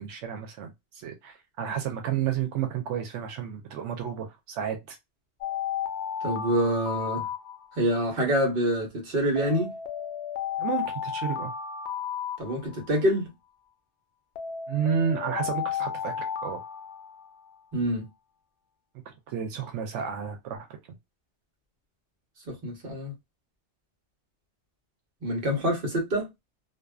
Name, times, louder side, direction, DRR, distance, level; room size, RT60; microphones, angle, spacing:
voice 1, 0.0-5.0 10.6-11.5 14.7-16.1 16.4-16.6 19.1-20.7, right 8 dB, 90° right, 0.9 m, -31 dB
Alarm, 5.4-8.0 9.4-13.0 14.4-17.6, left 8 dB, 75° left, 0.8 m, -33 dB
voice 2, 6.2-7.3 7.8-9.7 12.4-13.3 17.7-18.1 22.5-23.1 25.2-26.3, right 1 dB, 55° right, 1.2 m, -26 dB
2.5 x 2.2 x 2.2 m
omnidirectional pair, 1.2 m